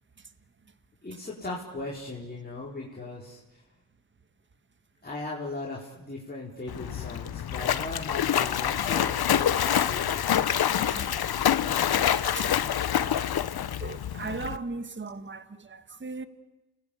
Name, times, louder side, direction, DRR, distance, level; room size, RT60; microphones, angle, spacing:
voice 1, 1.0-3.6 5.0-10.2, left 2 dB, 20° left, 4.6 m, -38 dB
Splash splatter, 6.7-14.6, left 10 dB, 60° left, 1.2 m, -26 dB
voice 2, 10.9-11.4 12.0-12.6 13.8-16.3, right 3 dB, 25° right, 1.7 m, -38 dB
29.5 x 20.0 x 8.6 m
cardioid pair, 80°, 42 cm